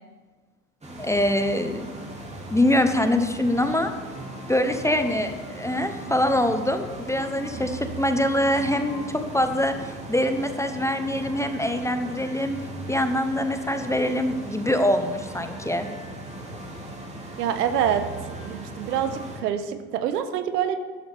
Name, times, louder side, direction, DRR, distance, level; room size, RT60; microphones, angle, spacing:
sound 1, 0.8-19.4, right 1 dB, 15° right, 2.6 m, -38 dB
voice 1, 1.0-1.8 2.5-3.9 4.5-12.6 12.9-15.9, left 1 dB, 5° left, 7 dB, 0.9 m, -24 dB
voice 2, 17.4-20.8, right 9 dB, 80° right, 9 dB, 1.2 m, -26 dB
12.5 x 11.0 x 3.6 m, 1.4 s
hypercardioid pair, 90°, 47 cm